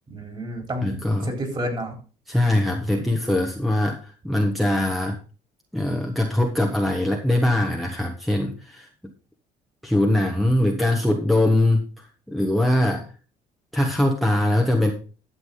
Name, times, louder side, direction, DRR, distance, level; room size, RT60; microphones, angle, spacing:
voice 1, 0.1-2.0 2.9-3.1, equal, 30° right, 4 dB, 4.0 m, -31 dB
voice 2, 0.8-1.3 2.3-5.2 5.7-8.9 9.8-13.1 13.7-14.9, left 1 dB, ahead, 2 dB, 1.4 m, -22 dB
11.5 x 7.5 x 3.9 m, 0.36 s
cardioid pair, 110°, 17 cm